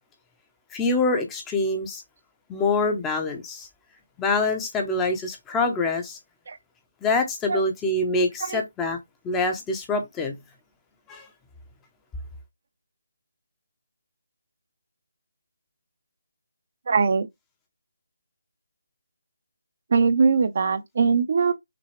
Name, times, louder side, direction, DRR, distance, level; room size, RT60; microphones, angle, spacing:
voice 1, 0.7-2.0 2.5-3.7 4.2-6.2 7.0-9.0 9.2-10.3 11.1-11.3, left 3 dB, 10° left, 0.8 m, -25 dB
voice 2, 16.9-17.3 19.9-21.5, right 5 dB, 50° right, 0.7 m, -21 dB
6.0 x 2.3 x 3.2 m
figure-of-eight pair, 160°, 0 cm